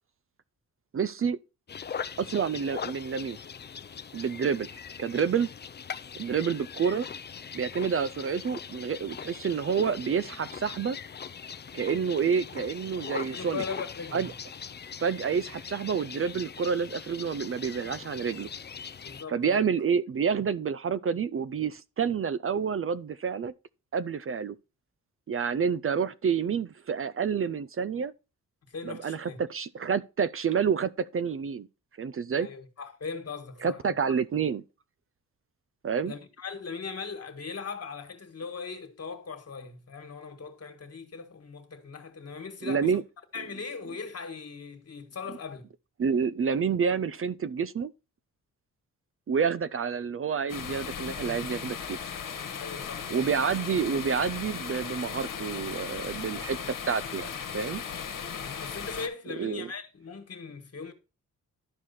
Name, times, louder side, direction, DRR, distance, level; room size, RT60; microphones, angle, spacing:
voice 1, 0.9-1.4 2.2-3.4 4.1-4.7 5.0-5.5 6.2-7.1 7.5-11.0 11.7-13.6 14.1-14.3 15.0-18.5 19.3-23.5 23.9-24.6 25.3-28.1 28.8-31.7 32.0-32.5 33.6-34.6 35.8-36.1 42.6-43.0 46.0-47.9 49.3-52.0 53.1-57.8 59.4-59.7, right 6 dB, 45° right, 0.5 m, -28 dB
sound 1, 1.7-19.2, left 7 dB, 35° left, 0.5 m, -41 dB
voice 2, 13.3-14.3 19.0-19.6 28.7-29.4 32.4-33.9 36.1-43.0 43.3-45.6 52.6-53.1 58.4-60.9, left 5 dB, 50° left, 1.7 m, -39 dB
sound 2, 50.5-59.1, left 7 dB, 75° left, 1.4 m, -37 dB
12.0 x 4.8 x 4.2 m
cardioid pair, 75°, 32 cm